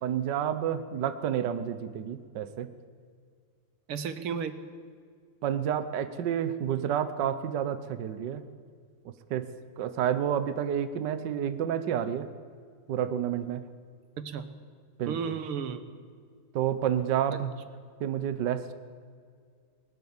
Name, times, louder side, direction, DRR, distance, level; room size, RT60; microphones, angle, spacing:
voice 1, 0.0-2.7 5.4-8.4 9.0-9.5 9.8-12.3 12.9-13.6 15.0-15.3 16.5-17.5 18.0-18.7, right 9 dB, 60° right, 12 dB, 1.4 m, -30 dB
voice 2, 3.9-4.6 14.2-14.5 15.1-15.8 17.3-17.4, right 6 dB, 75° right, 11 dB, 2.1 m, -33 dB
20.0 x 20.0 x 7.2 m, 2.1 s
omnidirectional pair, 2.4 m